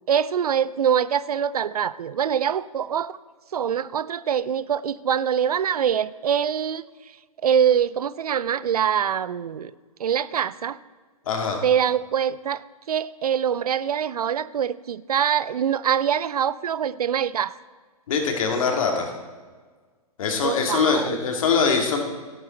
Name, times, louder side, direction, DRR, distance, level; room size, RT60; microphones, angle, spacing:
voice 1, 0.1-3.1 3.5-6.8 7.4-9.7 10.0-10.8 11.6-17.5 20.4-21.2, right 8 dB, 75° right, 0.5 m, -24 dB
voice 2, 11.3-11.6 18.1-19.1 20.2-22.0, left 5 dB, 60° left, 2.4 m, -22 dB
13.0 x 12.0 x 4.4 m
hypercardioid pair, 120°, 19 cm